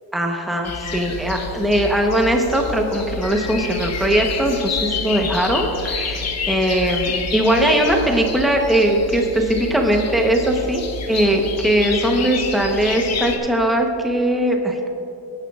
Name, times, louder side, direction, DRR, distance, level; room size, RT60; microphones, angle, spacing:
voice 1, 0.1-10.8 11.1-14.9, right 1 dB, ahead, 1 dB, 1.0 m, -20 dB
sound 1, 0.6-13.4, left 4 dB, 40° left, 1.2 m, -28 dB
18.5 x 11.0 x 2.5 m, 2.7 s
cardioid pair, 130°, 42 cm